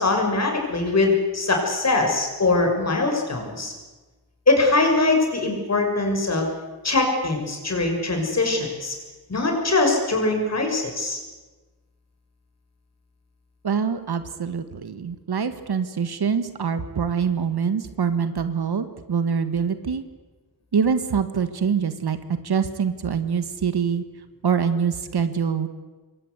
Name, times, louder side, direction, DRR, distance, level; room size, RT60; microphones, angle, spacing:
voice 1, 0.0-3.7 4.5-6.5 6.8-9.0 9.3-11.2, left 3 dB, 40° left, 3 dB, 6.1 m, -22 dB
voice 2, 13.6-20.0 20.7-24.0 24.4-25.7, right 6 dB, 70° right, 10 dB, 1.8 m, -24 dB
27.0 x 22.5 x 8.2 m, 1.2 s
wide cardioid pair, 160°, 40 cm